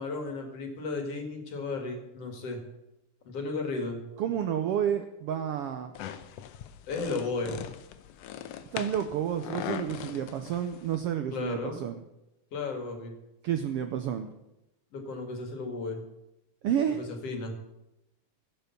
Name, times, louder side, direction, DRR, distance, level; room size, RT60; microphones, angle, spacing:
voice 1, 0.0-2.6 3.2-4.0 6.9-7.6 11.3-11.8 12.5-13.1 14.9-16.0 16.9-17.5, left 3 dB, 55° left, 4 dB, 2.6 m, -34 dB
voice 2, 4.2-5.9 8.7-12.0 13.4-14.3 16.6-17.0, right 9 dB, 80° right, 7 dB, 1.3 m, -30 dB
sound 1, 5.9-11.0, left 10 dB, 75° left, 1.5 m, -40 dB
15.5 x 6.8 x 6.9 m, 0.91 s
omnidirectional pair, 3.4 m